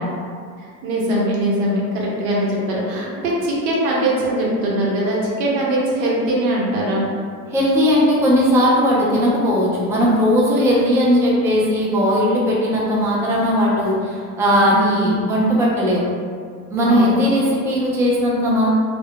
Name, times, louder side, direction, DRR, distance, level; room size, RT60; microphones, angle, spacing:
voice 1, 0.8-7.0 14.7-14.9 15.1-15.2 16.8-17.1, right 1 dB, 70° right, -4 dB, 0.9 m, -21 dB
voice 2, 7.5-16.0 16.7-18.7, equal, 5° right, -5 dB, 0.4 m, -17 dB
2.2 x 2.1 x 3.5 m, 2.1 s
supercardioid pair, 95°, 44 cm